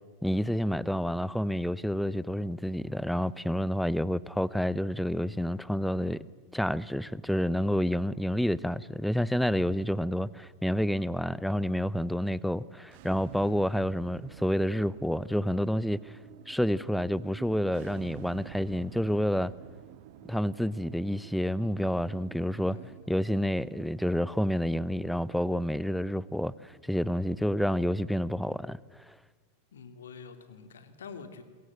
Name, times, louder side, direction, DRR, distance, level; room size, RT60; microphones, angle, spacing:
voice 1, 0.2-6.2 6.5-16.2 16.5-19.5 20.3-22.8 23.1-28.8 29.1-29.2, equal, ahead, 0.7 m, -29 dB
sound 1, 12.9-27.8, right 13 dB, 50° right, 1.2 m, -51 dB
voice 2, 22.6-23.0 29.7-31.4, left 5 dB, 65° left, 2.5 m, -46 dB
29.0 x 22.5 x 7.7 m
figure-of-eight pair, 90°, 0 cm